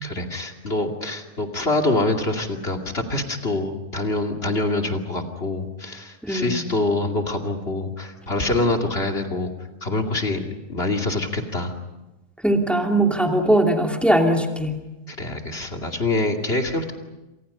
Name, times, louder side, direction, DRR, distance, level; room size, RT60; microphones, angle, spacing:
voice 1, 0.0-9.5 9.8-10.4 10.7-11.7 15.1-16.9, left 2 dB, 40° left, 3 dB, 2.8 m, -25 dB
voice 2, 6.2-6.5 12.4-14.8, right 1 dB, ahead, 2 dB, 2.7 m, -20 dB
29.0 x 27.0 x 5.6 m, 1.0 s
omnidirectional pair, 1.7 m